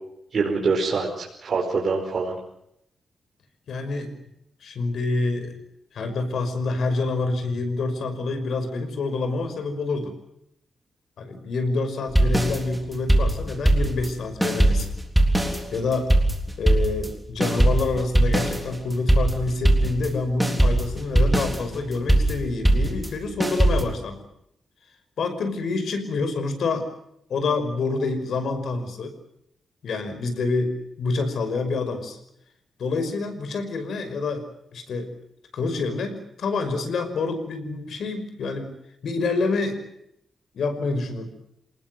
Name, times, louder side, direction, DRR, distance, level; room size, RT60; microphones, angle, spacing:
voice 1, 0.3-2.4, right 4 dB, 50° right, -1 dB, 5.1 m, -24 dB
voice 2, 3.7-4.1 4.6-5.5 5.9-10.1 11.2-14.9 15.4-16.1 16.6-24.2 25.2-26.9 27.3-29.1 29.8-30.7 31.0-32.2 32.8-34.4 34.7-35.1 35.5-38.7 39.0-39.8 40.5-41.3, left 3 dB, 70° left, 9 dB, 5.6 m, -27 dB
sound 1, 12.1-14.1 14.4-20.1 20.4-23.8, right 1 dB, 5° right, 3.7 m, -21 dB
27.5 x 19.5 x 7.8 m, 0.76 s
wide cardioid pair, 125°, 0 cm